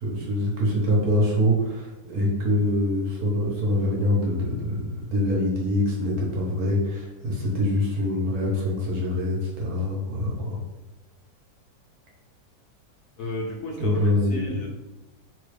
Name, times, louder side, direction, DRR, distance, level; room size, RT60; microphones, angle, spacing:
voice 1, 0.0-10.6 13.8-14.6, left 1 dB, 65° right, -3 dB, 1.2 m, -24 dB
voice 2, 13.2-14.7, left 1 dB, 70° left, -1 dB, 1.0 m, -32 dB
3.1 x 2.3 x 3.2 m, 1.0 s
omnidirectional pair, 1.9 m